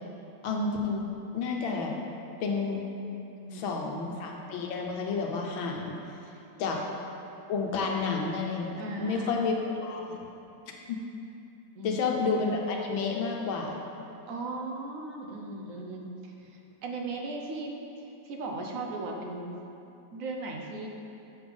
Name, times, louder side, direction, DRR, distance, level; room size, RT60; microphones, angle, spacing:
voice 1, 0.4-1.1 1.3-2.0 2.4-2.8 3.5-5.9 6.6-6.8 7.5-8.7 9.0-9.6 9.8-10.2 10.9-11.0 11.8-13.8, left 4 dB, 85° left, 1 dB, 1.7 m, -30 dB
voice 2, 3.3-3.9 8.8-9.5 11.7-12.1 14.3-19.5 20.1-20.9, right 2 dB, 55° right, 1 dB, 1.0 m, -37 dB
8.1 x 5.3 x 5.2 m, 2.8 s
omnidirectional pair, 2.1 m